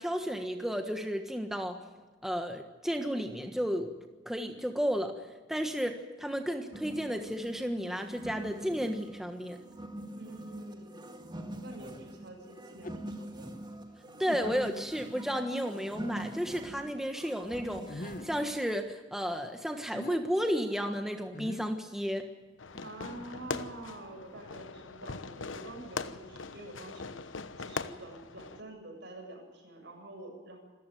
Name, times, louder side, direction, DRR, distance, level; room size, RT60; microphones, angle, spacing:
voice 1, 0.0-1.8 2.2-3.9 4.2-5.2 5.5-9.6 14.2-22.3, equal, ahead, 5 dB, 1.4 m, -33 dB
sound 1, 6.7-18.6, right 1 dB, 25° right, 2.1 m, -44 dB
voice 2, 10.1-11.1 11.6-13.6 22.8-30.6, right 2 dB, 60° right, 3 dB, 7.6 m, -47 dB
sound 2, 12.7-13.1 13.7-13.8 14.3-14.8 15.5-15.6 17.9-18.4 19.7-20.2 21.3-21.8 22.7-23.6, left 1 dB, 45° left, 1.2 m, -43 dB
Fireworks, 22.6-28.6, left 4 dB, 90° left, 1.1 m, -41 dB
27.0 x 14.5 x 9.3 m, 1.3 s
head